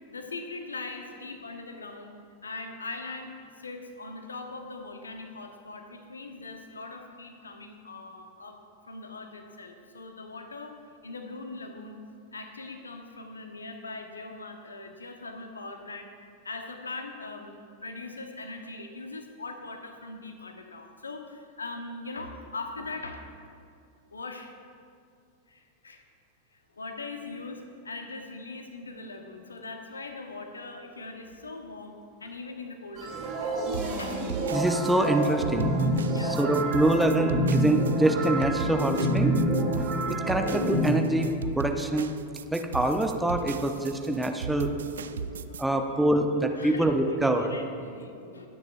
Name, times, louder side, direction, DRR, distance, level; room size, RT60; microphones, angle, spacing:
voice 1, 0.1-2.2 2.4-8.6 8.9-10.7 11.0-12.0 12.3-16.1 16.4-23.2 24.1-24.5 25.5-26.0 26.5-34.2 36.1-36.5 39.7-39.9 41.0-41.3 44.6-45.8 46.6-48.5, left 3 dB, 75° left, 5 dB, 1.1 m, -41 dB
sound 1, 33.0-40.8, right 1 dB, 35° right, 3.2 m, -28 dB
sound 2, 33.7-45.6, right 7 dB, 65° right, 0.4 m, -37 dB
voice 2, 34.5-35.7 36.2-39.4 40.1-42.1 42.5-44.7 45.6-47.5, right 1 dB, 5° right, 4 dB, 0.9 m, -25 dB
22.0 x 9.6 x 2.6 m, 2.3 s
figure-of-eight pair, 90°, 0 cm